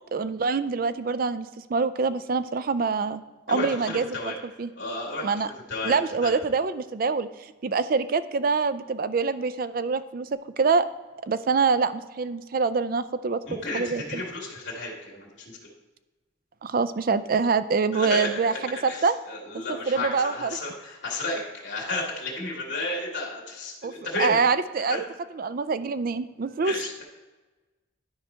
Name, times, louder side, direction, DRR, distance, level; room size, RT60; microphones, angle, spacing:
voice 1, 0.1-3.2 3.5-4.1 4.6-4.7 5.2-5.5 5.8-10.3 10.6-10.9 11.2-13.4 13.7-14.2 16.6-19.1 19.5-20.5 23.8-23.9 24.2-25.0 25.3-26.7, right 4 dB, 45° right, 13 dB, 0.4 m, -25 dB
voice 2, 3.5-4.3 4.8-6.3 13.5-15.6 17.9-24.4 24.8-25.0 26.6-27.0, left 2 dB, 65° left, -4 dB, 2.4 m, -32 dB
12.0 x 4.8 x 4.4 m, 1.2 s
head